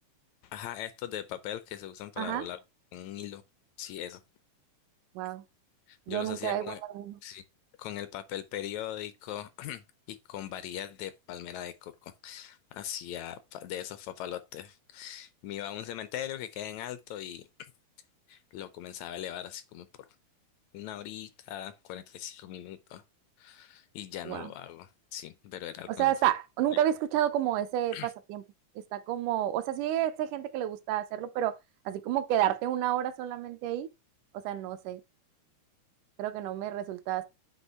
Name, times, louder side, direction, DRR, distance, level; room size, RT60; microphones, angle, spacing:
voice 1, 0.4-2.6 2.9-3.4 3.8-4.2 5.9-6.8 7.2-7.4 7.8-17.5 18.3-20.1 20.7-23.0 23.4-26.1 27.9-28.1, left 11 dB, 80° left, 1.7 m, -40 dB
voice 2, 6.1-7.2 24.3-24.5 25.9-28.4 28.8-31.6 31.9-33.9 34.3-35.0 36.2-37.3, right 12 dB, 85° right, 2.3 m, -30 dB
8.1 x 2.9 x 5.5 m
omnidirectional pair, 3.5 m